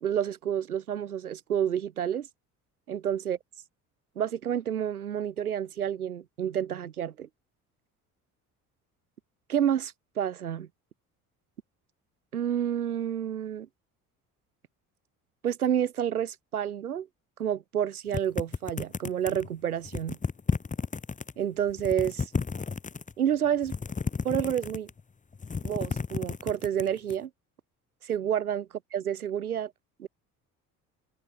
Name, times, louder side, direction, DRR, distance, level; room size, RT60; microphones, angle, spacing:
voice 1, 0.0-2.3 2.9-3.4 4.2-7.3 9.5-10.7 12.3-13.7 15.4-17.1 17.4-20.2 21.4-22.3 23.2-23.7 24.2-24.9 25.6-27.3 28.0-29.7 30.0-30.1, right 9 dB, 90° right, 0.6 m, -29 dB
sound 1, 18.1-19.5 19.8-21.3 21.7-23.1 23.6-25.0 25.3-27.1, left 5 dB, 15° left, 1.0 m, -32 dB
open air
figure-of-eight pair, 50°, 43 cm